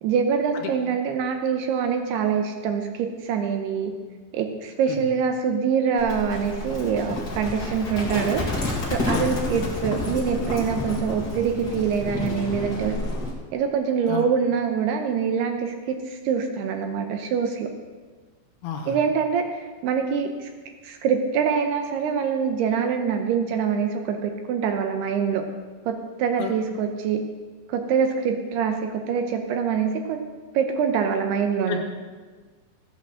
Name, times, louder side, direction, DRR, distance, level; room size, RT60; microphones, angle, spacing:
voice 1, 0.0-4.0 4.3-13.0 13.5-17.7 18.9-20.5 20.8-25.5 25.9-27.2 27.7-30.2 30.5-31.8, right 6 dB, 75° right, 5 dB, 2.6 m, -25 dB
Livestock farm animals working animals, 6.0-13.3, left 2 dB, 40° left, 1.5 m, -30 dB
voice 2, 18.6-18.9 26.4-26.5 31.7-31.8, left 8 dB, 70° left, 3 dB, 3.1 m, -30 dB
15.0 x 8.5 x 6.4 m, 1.4 s
omnidirectional pair, 5.2 m